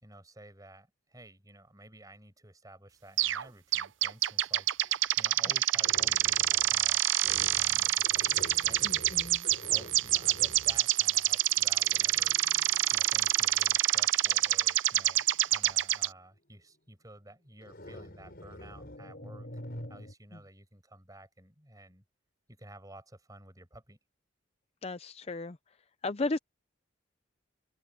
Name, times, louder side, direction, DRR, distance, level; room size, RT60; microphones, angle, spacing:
voice 1, 0.0-4.7 5.2-7.0 7.3-9.1 9.7-12.4 12.9-19.5 19.9-22.0 22.5-24.0, right 1 dB, 20° right, 5.9 m, -52 dB
sound 1, 3.2-3.4 3.7-16.1, right 14 dB, 75° right, 0.6 m, -27 dB
sound 2, 5.8-6.9 7.2-14.1 15.0-15.3 17.6-20.1, left 1 dB, 50° left, 5.9 m, -48 dB
voice 2, 8.8-9.4 24.8-25.6 26.0-26.4, left 3 dB, 30° left, 0.5 m, -34 dB
open air
head